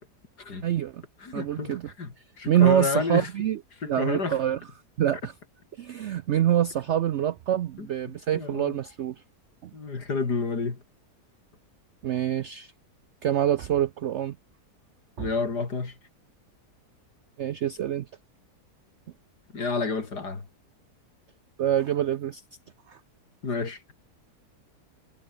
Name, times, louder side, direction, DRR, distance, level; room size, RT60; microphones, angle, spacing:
voice 1, 0.6-1.0 1.3-1.9 2.5-3.6 3.8-4.6 5.0-5.3 5.8-9.2 9.6-9.7 12.0-12.7 13.2-14.4 15.2-15.3 17.4-18.1 21.6-22.4 22.9-23.0, right 11 dB, 65° right, 0.7 m, -25 dB
voice 2, 1.2-3.3 3.8-4.4 7.8-7.9 8.3-8.8 9.7-10.8 15.2-15.9 19.5-20.4 23.4-23.9, left 4 dB, 90° left, 3.9 m, -30 dB
omnidirectional pair, 1.7 m